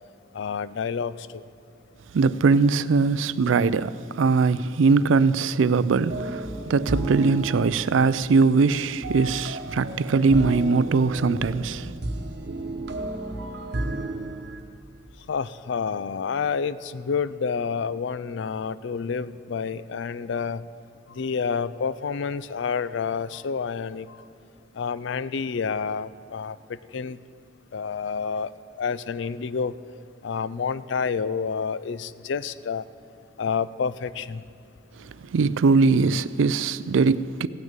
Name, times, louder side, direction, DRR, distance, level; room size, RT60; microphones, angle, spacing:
voice 1, 0.3-1.4 15.2-20.7 21.1-24.3 24.7-27.2 27.7-28.5 28.8-29.7 30.2-32.9 33.4-34.4, left 6 dB, 65° left, 0.4 m, -29 dB
voice 2, 2.1-11.9 35.3-37.5, right 4 dB, 80° right, 0.4 m, -21 dB
sound 1, 6.1-14.6, right 2 dB, 60° right, 1.0 m, -33 dB
16.5 x 6.4 x 8.9 m
head